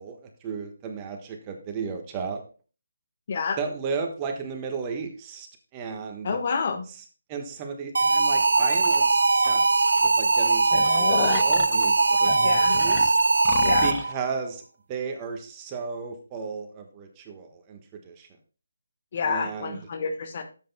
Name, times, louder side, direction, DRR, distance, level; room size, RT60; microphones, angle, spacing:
voice 1, 0.0-2.4 3.6-5.5 5.7-6.4 7.3-13.1 13.8-14.6 14.9-18.3 19.2-19.8, right 5 dB, 20° right, 4 dB, 1.3 m, -34 dB
voice 2, 3.3-3.6 6.2-6.9 12.4-12.8 13.6-13.9 19.1-20.4, left 5 dB, 45° left, 6 dB, 1.3 m, -28 dB
sound 1, 7.9-14.2, right 3 dB, 70° right, 0.4 m, -21 dB
sound 2, 8.8-9.0 9.4-9.5 9.9-10.0 10.3-14.1, left 10 dB, 25° left, 0.5 m, -33 dB
12.5 x 7.9 x 2.2 m, 0.36 s
figure-of-eight pair, 155°, 0 cm